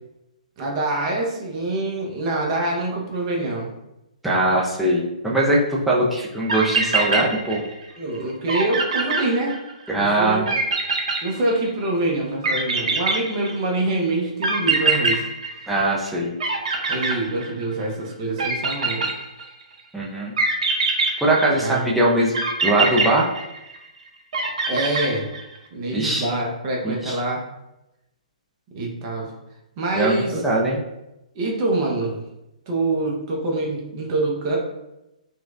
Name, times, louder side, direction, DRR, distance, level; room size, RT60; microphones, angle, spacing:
voice 1, 0.6-3.7 8.0-9.6 9.9-10.5 11.2-15.2 16.9-19.1 21.5-21.8 24.7-25.3 25.7-27.4 28.7-29.3 29.8-30.4 31.3-32.2 32.7-34.6, right 2 dB, 35° right, -1 dB, 0.9 m, -25 dB
voice 2, 4.2-7.6 9.9-10.5 15.7-16.3 19.9-20.3 21.2-23.3 25.9-26.3 26.8-27.2 30.0-30.8, right 1 dB, 5° right, -5 dB, 0.5 m, -21 dB
sound 1, 6.5-7.9 8.1-8.2 8.5-9.9 10.5-11.9 12.4-13.8 14.4-16.1 16.4-17.8 18.4-19.6 20.4-21.8 22.3-23.9 24.3-25.6, right 3 dB, 60° right, 0.7 m, -23 dB
4.2 x 2.3 x 2.4 m, 0.92 s
figure-of-eight pair, 130°, 4 cm